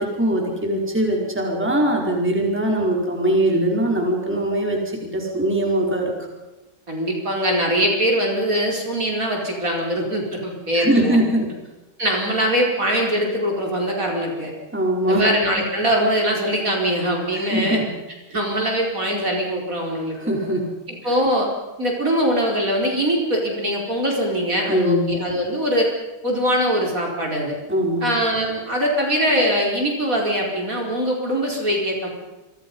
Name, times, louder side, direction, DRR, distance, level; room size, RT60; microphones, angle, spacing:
voice 1, 0.0-6.1 10.7-11.5 14.7-15.3 17.3-17.9 20.1-20.7 21.0-21.2 24.7-25.1 27.7-28.1, right 1 dB, 5° right, -1 dB, 4.6 m, -21 dB
voice 2, 6.9-11.2 12.0-14.5 15.1-17.8 18.3-20.2 20.9-21.5 21.8-25.9 26.2-27.5 28.0-32.1, equal, 40° right, -1 dB, 5.1 m, -22 dB
29.0 x 24.5 x 5.5 m, 1.1 s
omnidirectional pair, 2.3 m